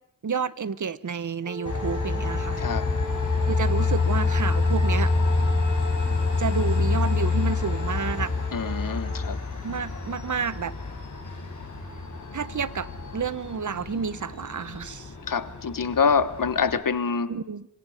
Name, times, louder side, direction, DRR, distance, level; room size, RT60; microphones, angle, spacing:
voice 1, 0.2-2.6 3.5-5.1 6.4-8.3 9.6-10.7 12.3-15.1 17.3-17.7, right 6 dB, 65° right, 17 dB, 0.9 m, -30 dB
Wind instrument woodwind instrument, 1.4-9.4, left 1 dB, 15° right, 1.7 m, -38 dB
Train, 1.6-16.8, left 3 dB, 65° left, 5.2 m, -27 dB
voice 2, 2.6-2.9 8.5-9.4 15.3-17.3, left 5 dB, 85° left, 14 dB, 1.2 m, -25 dB
26.5 x 24.5 x 5.1 m, 0.77 s
wide cardioid pair, 60°, 33 cm